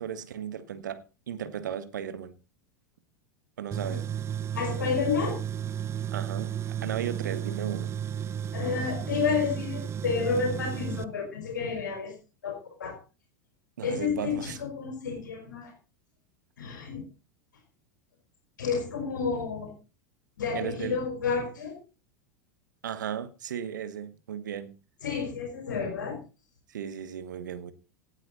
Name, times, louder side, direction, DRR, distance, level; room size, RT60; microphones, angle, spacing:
voice 1, 0.0-2.3 3.6-4.0 6.1-6.5 6.8-7.9 13.8-14.6 20.5-21.0 22.8-24.7 26.7-27.7, right 9 dB, 70° right, 1.5 m, -35 dB
Tools, 3.7-11.0, right 9 dB, 25° right, 0.5 m, -33 dB
voice 2, 4.5-5.4 8.5-12.1 12.4-13.0 13.8-15.7 16.6-17.1 18.6-19.7 20.4-21.8 25.0-26.2, left 5 dB, 75° left, 4.2 m, -30 dB
17.5 x 9.1 x 4.1 m
figure-of-eight pair, 85°, 10 cm